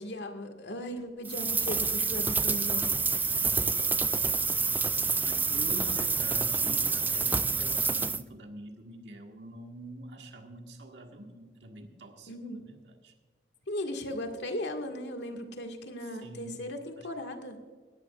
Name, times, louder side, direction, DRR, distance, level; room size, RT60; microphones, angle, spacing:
voice 1, 0.0-2.9 12.3-12.6 13.7-17.6, left 1 dB, 85° left, 4 dB, 1.8 m, -37 dB
sound 1, 1.2-8.2, right 4 dB, 10° right, 0.3 m, -28 dB
voice 2, 5.2-13.1 16.0-16.6 17.0-17.1, right 1 dB, 90° right, 3 dB, 1.7 m, -45 dB
19.0 x 14.0 x 2.4 m, 1.5 s
head